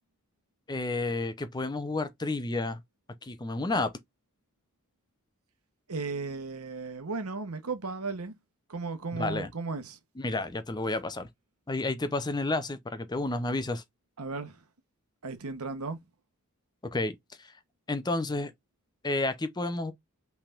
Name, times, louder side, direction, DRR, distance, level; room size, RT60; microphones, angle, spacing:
voice 1, 0.7-2.8 3.2-3.9 9.1-9.5 10.2-11.3 11.7-13.8 16.8-17.5 17.9-18.5 19.0-19.9, left 2 dB, 20° left, 0.6 m, -31 dB
voice 2, 5.9-8.3 8.7-10.0 14.2-14.6 15.2-16.0, right 4 dB, 85° right, 1.1 m, -35 dB
5.6 x 3.5 x 2.4 m
head